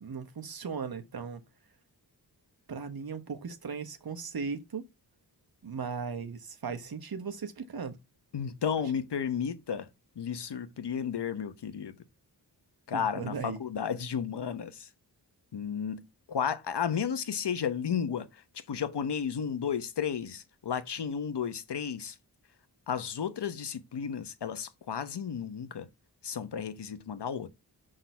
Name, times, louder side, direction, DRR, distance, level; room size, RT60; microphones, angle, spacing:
voice 1, 0.0-1.4 2.7-4.9 5.6-8.0 12.9-13.6, right 5 dB, 60° right, 1.2 m, -37 dB
voice 2, 8.3-9.9 10.2-12.0 12.9-14.9 15.5-18.4 18.7-22.1 22.9-25.9 26.2-27.5, left 7 dB, 75° left, 1.0 m, -33 dB
6.1 x 3.9 x 5.6 m
wide cardioid pair, 65°, 41 cm